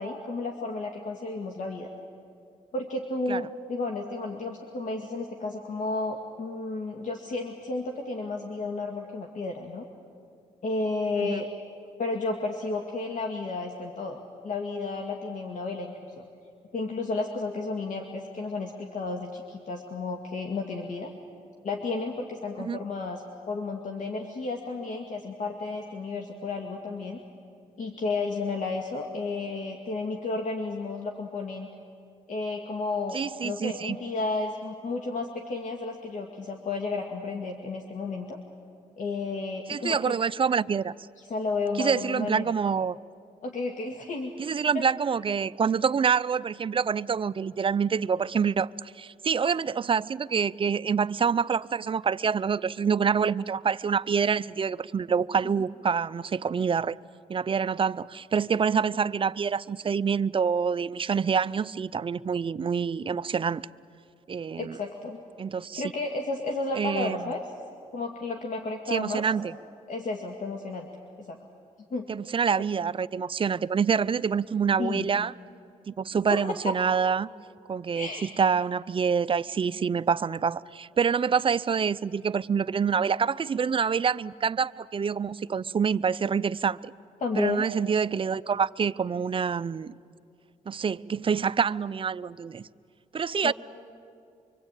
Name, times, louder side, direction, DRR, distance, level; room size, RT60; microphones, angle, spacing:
voice 1, 0.0-1.9 2.7-9.9 10.6-11.5 12.0-14.2 14.4-16.2 16.7-21.1 21.6-27.2 27.8-31.7 32.3-33.2 33.4-38.4 39.0-40.1 41.2-42.6 43.4-44.3 44.7-44.8 55.4-55.5 58.9-59.0 64.6-65.2 65.8-67.4 67.9-69.2 69.9-70.9 71.2-71.4 71.9-72.1 74.8-75.1 76.3-76.5 77.9-78.3 87.2-87.7 93.4-93.5, left 3 dB, 65° left, 2.1 m, -32 dB
voice 2, 33.1-34.0 39.7-40.9 41.8-43.0 44.4-57.0 57.3-63.6 64.3-64.8 65.4-65.8 66.7-67.2 68.9-69.5 72.1-75.3 75.9-77.3 77.7-78.1 78.4-86.9 87.4-89.9 90.7-92.7 93.1-93.5, right 6 dB, 40° right, 0.6 m, -26 dB
25.5 x 24.5 x 9.1 m
cardioid pair, 85°, 14 cm